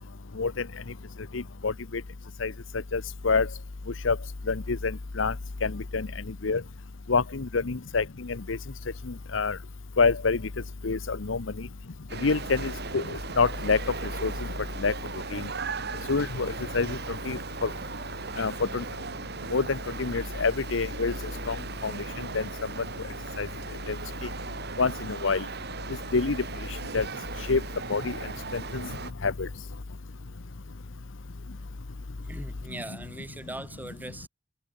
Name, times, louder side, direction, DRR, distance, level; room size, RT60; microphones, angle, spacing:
voice 1, 1.3-1.7 2.4-2.5 2.9-3.5 4.0-4.2 4.5-5.3 5.6-6.1 6.4-6.6 7.1-8.6 9.1-9.6 10.0-10.4 10.8-11.4 12.2-13.8 14.2-14.3 14.8-14.9 15.3-15.5 16.1-17.0 17.3-17.7 18.4-18.8 19.5-21.1 21.5-21.6 21.8-22.4 23.4-23.5 23.9-24.0 24.8-25.4 26.1-26.4 26.9-27.1 27.5-27.6 27.9-28.1 28.5-28.8 29.2-29.5, left 4 dB, 80° left, 0.9 m, -26 dB
sound 1, 12.1-29.1, right 4 dB, 60° right, 1.7 m, -38 dB
voice 2, 32.2-34.3, right 1 dB, 10° right, 1.3 m, -40 dB
head